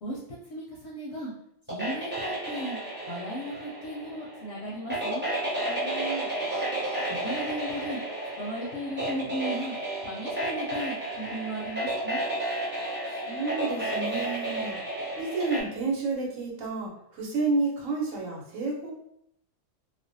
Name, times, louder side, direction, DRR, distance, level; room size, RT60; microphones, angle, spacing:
voice 1, 0.5-1.3 1.7-2.8 3.1-5.3 7.2-8.0 8.4-9.7 10.0-12.2, equal, 65° left, -4 dB, 0.7 m, -36 dB
sound 1, 1.7-15.6, right 1 dB, 15° right, 0.4 m, -32 dB
voice 2, 5.6-6.3 13.1-14.8 15.2-18.9, right 3 dB, 75° right, -1 dB, 1.1 m, -31 dB
2.4 x 2.1 x 2.6 m, 0.73 s
omnidirectional pair, 1.4 m